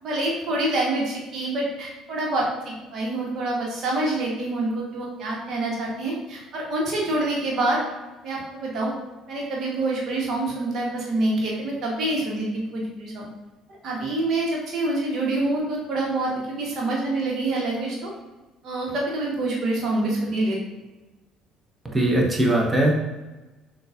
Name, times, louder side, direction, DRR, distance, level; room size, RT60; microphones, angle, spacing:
voice 1, 0.0-7.8 8.2-8.9 9.3-13.3 13.8-18.1 18.6-20.6, right 2 dB, 50° right, -2 dB, 1.2 m, -26 dB
voice 2, 21.8-22.9, right 1 dB, 15° right, 0 dB, 0.9 m, -20 dB
6.3 x 2.4 x 2.5 m, 1.1 s
figure-of-eight pair, 55°, 0 cm